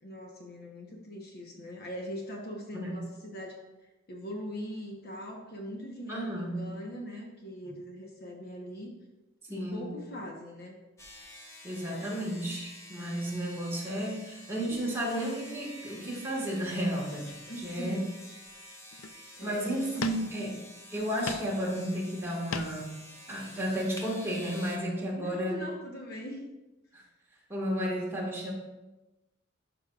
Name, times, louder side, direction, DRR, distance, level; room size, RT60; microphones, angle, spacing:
voice 1, 0.0-9.0 9.5-10.8 17.5-18.1 19.4-20.3 25.2-26.5, equal, 50° left, 1 dB, 1.0 m, -41 dB
voice 2, 6.1-6.6 9.5-9.9 11.6-17.3 17.6-18.0 19.4-20.6 20.9-22.9 23.3-25.6 26.9-27.0 27.5-28.5, equal, 10° right, -4 dB, 1.8 m, -32 dB
sound 1, 11.0-24.8, left 1 dB, 15° left, 1.0 m, -49 dB
sound 2, 16.6-16.7 17.3-18.0 18.5-18.6 18.9-19.4 20.0-20.6 21.0-21.6 21.9-22.9, left 5 dB, 90° left, 0.5 m, -39 dB
12.0 x 5.2 x 2.4 m, 1.0 s
head